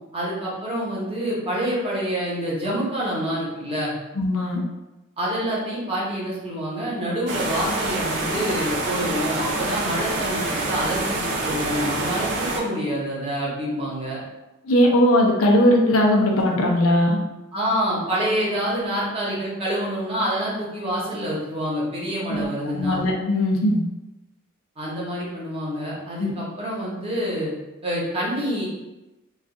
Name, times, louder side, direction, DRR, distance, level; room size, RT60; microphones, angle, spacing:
voice 1, 0.1-3.9 5.2-14.2 17.5-23.0 24.8-27.5 27.8-28.7, equal, 30° right, -5 dB, 0.9 m, -27 dB
voice 2, 4.1-4.6 14.6-17.2 22.3-22.5 22.7-23.8 26.2-26.3, left 1 dB, 85° left, 0 dB, 0.5 m, -19 dB
sound 1, 7.3-12.6, right 2 dB, 55° right, 0.6 m, -26 dB
2.3 x 2.3 x 3.7 m, 1.0 s
head